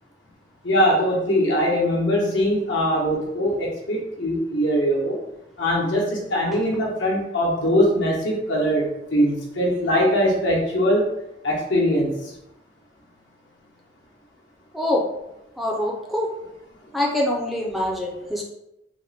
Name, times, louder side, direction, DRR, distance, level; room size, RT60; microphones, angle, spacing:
voice 1, 0.6-5.2 5.6-11.1 11.4-12.3, equal, 80° left, -3 dB, 1.0 m, -21 dB
voice 2, 15.6-16.3 16.9-18.4, left 1 dB, ahead, -1 dB, 0.4 m, -24 dB
3.4 x 2.1 x 4.0 m, 0.87 s
head